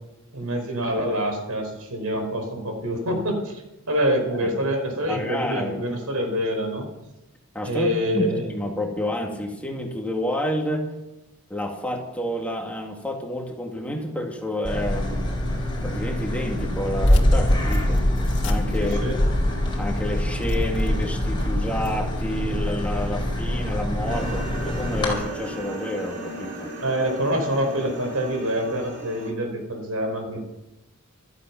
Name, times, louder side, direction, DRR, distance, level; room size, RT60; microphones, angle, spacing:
voice 1, 0.3-3.6 3.9-6.9 7.6-8.4 18.8-19.2 26.8-30.4, equal, 85° right, 4 dB, 4.6 m, -26 dB
voice 2, 5.1-5.8 7.5-10.9 11.5-15.3 15.8-18.1 18.4-19.2 19.8-26.7, left 1 dB, 5° left, 1 dB, 2.0 m, -29 dB
sound 1, 14.6-25.1, left 1 dB, 20° left, 4.6 m, -27 dB
sound 2, 17.0-21.9, left 1 dB, 55° left, 2.0 m, -23 dB
sound 3, 24.1-29.3, right 1 dB, 50° right, 4.1 m, -36 dB
15.0 x 13.5 x 5.9 m, 0.94 s
head